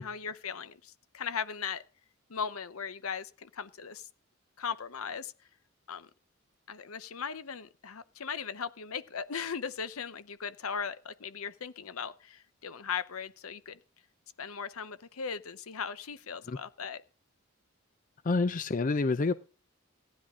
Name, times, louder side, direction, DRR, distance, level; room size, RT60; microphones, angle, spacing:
voice 1, 0.0-1.8 2.3-4.1 4.6-5.3 5.9-6.1 6.7-13.8 14.4-17.0, left 6 dB, 80° left, 14 dB, 0.8 m, -38 dB
voice 2, 18.2-19.3, left 3 dB, 35° left, 14 dB, 0.5 m, -27 dB
15.5 x 10.0 x 3.7 m, 0.37 s
head